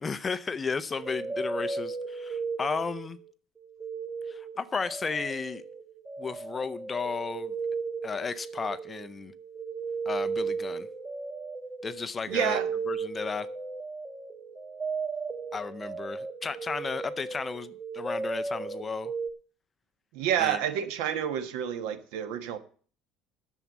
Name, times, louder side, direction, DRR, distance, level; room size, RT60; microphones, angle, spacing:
voice 1, 0.0-3.2 4.3-5.6 6.2-7.5 8.0-9.3 10.1-10.9 11.8-12.6 12.9-13.5 15.5-19.1 20.4-20.6, left 5 dB, 15° left, 14 dB, 0.5 m, -34 dB
sound 1, 0.9-3.3 3.6-19.3, right 4 dB, 10° right, 0.8 m, -35 dB
voice 2, 12.3-12.7 20.1-22.6, right 9 dB, 80° right, 10 dB, 1.3 m, -29 dB
11.0 x 7.1 x 7.2 m, 0.43 s
cardioid pair, 175°, 0 cm